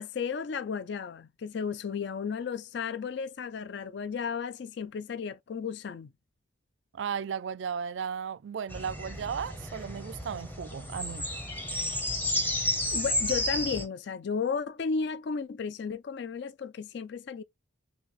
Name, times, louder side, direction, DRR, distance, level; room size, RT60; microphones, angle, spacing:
voice 1, 0.0-6.1 12.9-17.4, left 5 dB, 55° left, 0.4 m, -34 dB
voice 2, 6.9-11.3, right 7 dB, 65° right, 0.3 m, -35 dB
sound 1, 8.7-13.9, left 1 dB, 10° left, 0.8 m, -32 dB
6.2 x 2.3 x 3.1 m
head